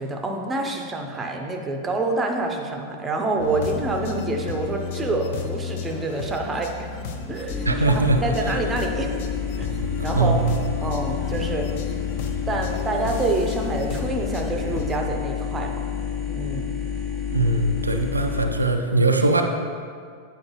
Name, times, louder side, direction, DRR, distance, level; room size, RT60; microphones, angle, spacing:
voice 1, 0.0-9.1 9.6-9.7 10.0-10.4 10.8-11.7 12.5-15.8 16.3-16.7, right 2 dB, 15° right, 2 dB, 0.8 m, -27 dB
sound 1, 3.4-15.0, left 5 dB, 50° left, 0.6 m, -33 dB
sound 2, 7.5-18.4, left 8 dB, 20° left, 0.9 m, -29 dB
voice 2, 7.7-8.2 10.1-10.6 17.3-19.4, right 2 dB, 80° right, 5 dB, 0.4 m, -21 dB
8.7 x 4.8 x 3.2 m, 2.1 s
figure-of-eight pair, 90°, 0 cm